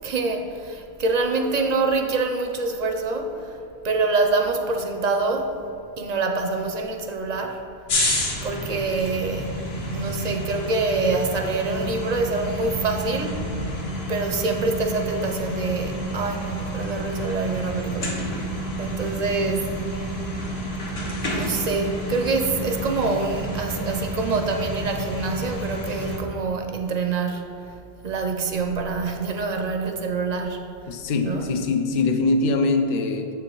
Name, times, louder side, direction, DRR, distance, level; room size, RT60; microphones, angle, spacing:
voice 1, 0.0-3.6 3.8-5.6 6.0-7.6 8.4-9.6 9.9-13.4 14.1-19.9 21.2-27.8 28.0-30.9 31.2-31.5, right 3 dB, 50° right, 4 dB, 0.5 m, -26 dB
sound 1, 7.9-26.2, equal, 80° left, 1.3 m, -29 dB
voice 2, 30.9-33.3, left 3 dB, 55° left, 6 dB, 0.6 m, -22 dB
7.0 x 4.5 x 3.8 m, 2.6 s
omnidirectional pair, 1.0 m